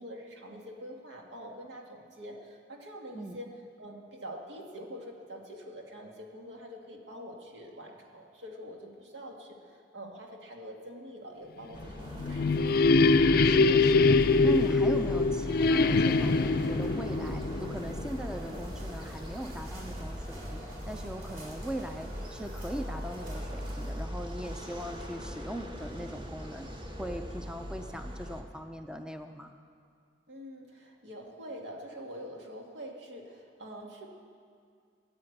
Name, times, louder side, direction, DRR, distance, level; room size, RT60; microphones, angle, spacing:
voice 1, 0.0-3.5 3.8-12.7 30.3-34.1, equal, 80° right, 1 dB, 1.9 m, -45 dB
sound 1, 11.7-28.4, equal, 30° right, 1.2 m, -40 dB
sound 2, 11.8-18.5, left 3 dB, 55° left, 0.4 m, -24 dB
sound 3, 12.0-23.9, right 1 dB, 55° right, 3.0 m, -51 dB
voice 2, 13.4-26.7 27.0-29.5, equal, 5° right, 6 dB, 0.5 m, -39 dB
14.0 x 9.5 x 7.9 m, 2.2 s
head